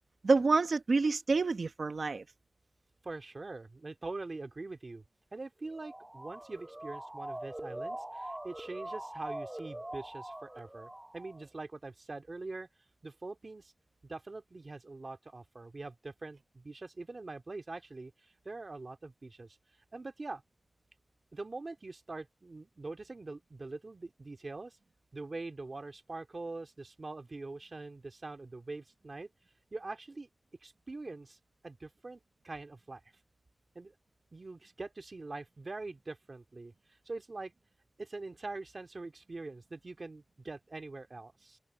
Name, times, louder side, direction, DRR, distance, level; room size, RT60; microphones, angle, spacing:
voice 1, 0.2-2.2, right 3 dB, 85° right, 1.0 m, -27 dB
voice 2, 3.0-5.0 5.3-12.7 13.0-13.7 14.0-19.6 19.9-20.4 21.3-24.8 25.1-29.3 29.7-30.3 30.6-31.4 31.6-33.0 33.7-33.9 34.3-36.7 37.1-37.5 38.0-41.6, right 3 dB, 60° right, 2.2 m, -43 dB
Motor vehicle (road) / Siren, 5.6-11.5, right 1 dB, 20° right, 1.8 m, -43 dB
open air
wide cardioid pair, 75°, 0 cm